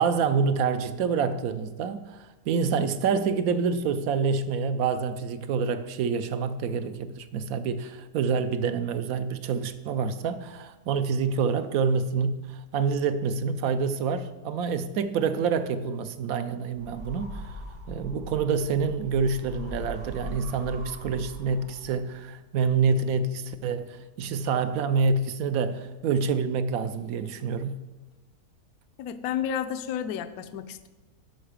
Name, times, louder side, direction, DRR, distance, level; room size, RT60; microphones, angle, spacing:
voice 1, 0.0-27.7, right 5 dB, 70° right, 1.0 m, -27 dB
sound 1, 16.8-22.1, equal, 90° right, 2.8 m, -40 dB
voice 2, 29.0-30.9, left 9 dB, 75° left, 1.0 m, -31 dB
12.0 x 5.5 x 5.0 m
omnidirectional pair, 1.7 m